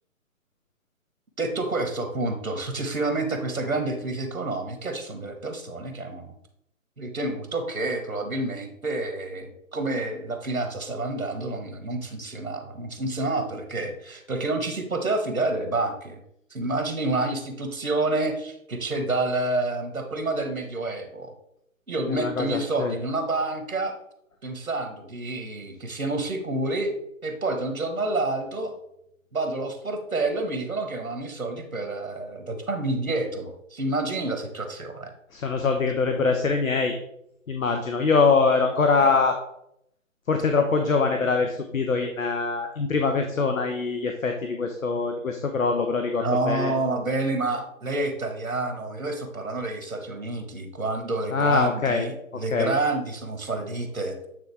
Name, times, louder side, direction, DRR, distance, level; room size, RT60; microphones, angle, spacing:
voice 1, 1.4-6.3 7.0-16.2 16.5-21.3 21.9-23.9 24.4-26.9 27.2-28.7 29.3-35.1 39.0-39.1 46.2-54.2, right 2 dB, 80° right, 6 dB, 1.3 m, -28 dB
voice 2, 22.1-22.9 35.3-36.9 37.5-39.3 40.3-46.7 51.3-52.1 52.5-52.7, left 4 dB, 70° left, 5 dB, 0.9 m, -23 dB
9.0 x 3.8 x 3.3 m, 0.77 s
figure-of-eight pair, 135°, 41 cm